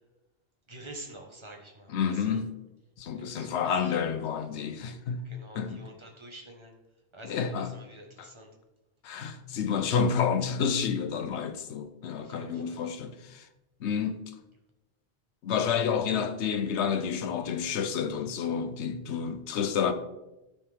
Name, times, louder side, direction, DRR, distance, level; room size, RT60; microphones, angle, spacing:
voice 1, 0.7-2.4 3.1-4.1 5.2-6.7 7.1-8.5 12.1-12.8, right 1 dB, 25° right, 1.3 m, -48 dB
voice 2, 1.9-2.5 3.0-5.2 5.6-5.8 7.2-7.7 8.2-8.3 9.0-13.5 13.8-14.2 15.4-19.9, left 7 dB, 85° left, 1.0 m, -29 dB
12.5 x 4.2 x 3.5 m
omnidirectional pair, 1.1 m